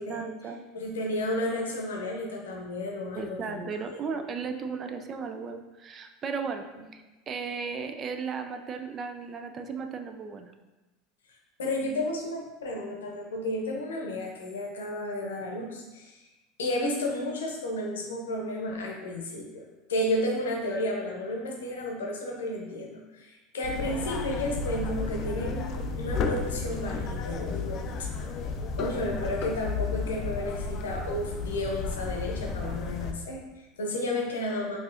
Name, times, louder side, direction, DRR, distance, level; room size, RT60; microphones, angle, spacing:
voice 1, 0.1-0.6 3.2-6.7 6.9-10.5, right 5 dB, 35° right, 6 dB, 0.4 m, -35 dB
voice 2, 0.7-3.8 11.6-16.2 16.6-19.6 19.9-28.2 28.7-34.8, left 1 dB, 80° left, 0 dB, 0.7 m, -32 dB
sound 1, 23.6-33.1, left 4 dB, 45° left, 0.4 m, -33 dB
4.5 x 2.8 x 2.5 m, 1.1 s
hypercardioid pair, 80°, 0 cm